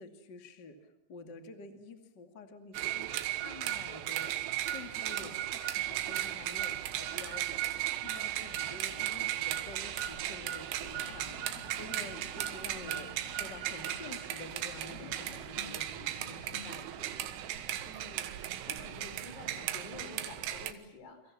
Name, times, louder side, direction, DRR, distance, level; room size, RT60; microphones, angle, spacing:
voice 1, 0.0-11.4 11.7-17.1, left 3 dB, 40° left, 7 dB, 1.5 m, -49 dB
sound 1, 2.7-20.7, right 13 dB, 80° right, 3.8 m, -36 dB
voice 2, 4.7-5.4 17.9-21.3, left 4 dB, 55° left, 7 dB, 6.3 m, -50 dB
sound 2, 6.1-17.6, left 4 dB, 85° left, 6.1 m, -53 dB
29.5 x 25.5 x 7.3 m, 0.70 s
omnidirectional pair, 5.6 m